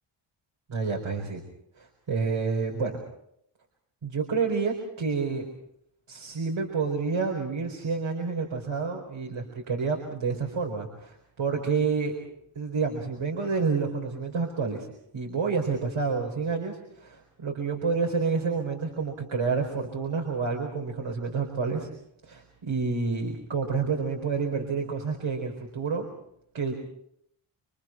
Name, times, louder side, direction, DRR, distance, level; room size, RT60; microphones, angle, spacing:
voice 1, 0.7-1.4 1.8-3.0 4.0-5.5 6.1-12.2 12.5-14.9 15.1-21.9 22.2-26.0 26.5-26.7, right 4 dB, 70° right, 1 dB, 4.5 m, -29 dB
29.0 x 24.0 x 4.5 m, 0.73 s
cardioid pair, 55°, 50 cm